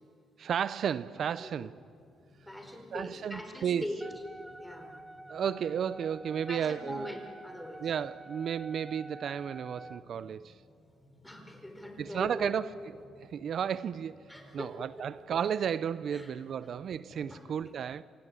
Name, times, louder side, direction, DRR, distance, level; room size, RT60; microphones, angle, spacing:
voice 1, 0.4-1.8 2.9-3.9 5.3-7.2 7.8-10.6 12.0-12.7 13.2-14.2 14.5-18.0, right 8 dB, 60° right, 0.5 m, -33 dB
sound 1, 0.6-17.4, left 1 dB, 30° left, 7.0 m, -60 dB
voice 2, 1.4-1.7 2.4-4.0 4.6-4.9 6.5-7.9 11.2-12.7 14.3-14.7 16.1-16.3 16.6-16.7 17.3-17.7, left 1 dB, 5° left, 4.6 m, -42 dB
Wind instrument woodwind instrument, 4.0-10.1, right 2 dB, 10° right, 0.9 m, -49 dB
27.5 x 17.5 x 9.7 m
cardioid pair, 90°, 0 cm